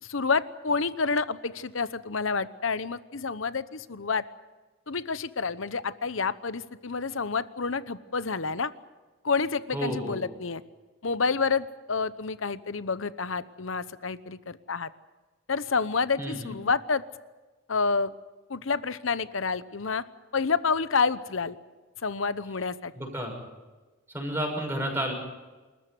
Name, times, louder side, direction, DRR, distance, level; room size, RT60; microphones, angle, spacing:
voice 1, 0.0-4.2 4.9-8.7 9.2-10.6 11.0-14.9 15.5-17.0 17.7-18.1 18.5-20.0 20.3-21.6 22.0-22.9, left 4 dB, 75° left, 14 dB, 1.0 m, -29 dB
voice 2, 9.7-10.2 16.2-16.5 22.9-23.3 24.1-25.1, equal, 10° right, 1 dB, 6.4 m, -31 dB
27.5 x 14.0 x 9.4 m, 1.2 s
head